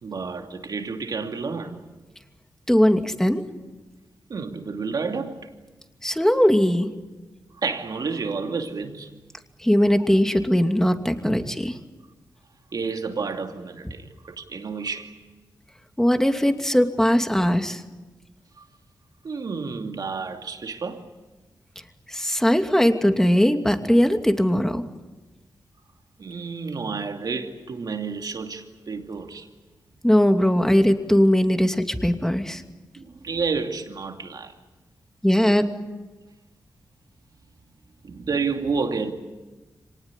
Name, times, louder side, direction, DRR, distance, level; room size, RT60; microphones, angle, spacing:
voice 1, 0.0-1.8 4.3-5.5 7.6-9.1 12.7-15.2 18.6-18.7 19.2-21.0 26.2-29.5 32.9-34.5 38.0-39.1, right 4 dB, 65° right, 5 dB, 2.6 m, -30 dB
voice 2, 2.7-3.4 6.0-6.9 9.6-11.8 16.0-17.8 22.1-24.8 30.0-32.6 35.2-35.7, equal, 5° left, 6 dB, 2.6 m, -20 dB
25.0 x 19.0 x 9.9 m, 1.2 s
supercardioid pair, 45°, 7 cm